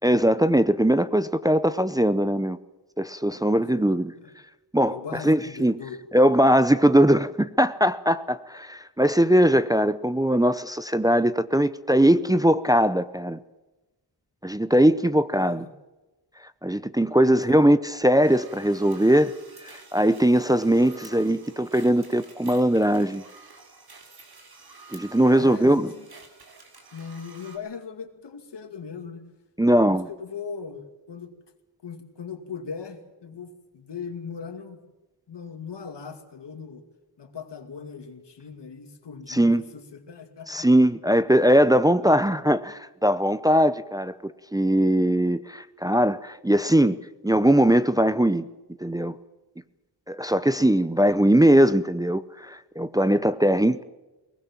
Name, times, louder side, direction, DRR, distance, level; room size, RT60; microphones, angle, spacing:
voice 1, 0.0-2.6 3.0-4.1 4.7-5.8 6.1-13.4 14.4-15.6 16.6-19.3 19.9-23.2 24.9-25.9 29.6-30.1 39.3-39.6 40.5-47.0 47.2-48.5 48.8-49.1 50.1-53.8, right 1 dB, 10° right, 0.6 m, -20 dB
voice 2, 3.7-4.3 4.8-6.1 15.3-15.7 17.2-17.7 25.2-26.1 26.9-29.2 29.9-31.3 31.8-34.8 35.3-36.9 37.2-40.7 42.1-42.2, left 6 dB, 75° left, 2.5 m, -39 dB
sound 1, 18.2-27.6, right 4 dB, 60° right, 3.8 m, -49 dB
21.5 x 19.5 x 7.4 m
wide cardioid pair, 135°, 42 cm